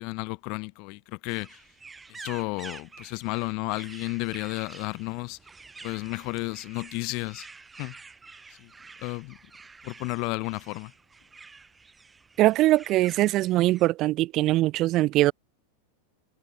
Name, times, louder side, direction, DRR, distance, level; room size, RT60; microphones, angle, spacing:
voice 1, 0.0-1.6 2.1-5.4 5.8-7.5 7.8-7.9 8.6-8.7 9.0-9.4 9.8-10.9, left 30 dB, 45° left, 3.3 m, -32 dB
sound 1, 1.3-13.9, right 4 dB, 15° right, 6.4 m, -48 dB
voice 2, 12.4-15.3, right 16 dB, 35° right, 2.0 m, -22 dB
figure-of-eight pair, 90°, 0 cm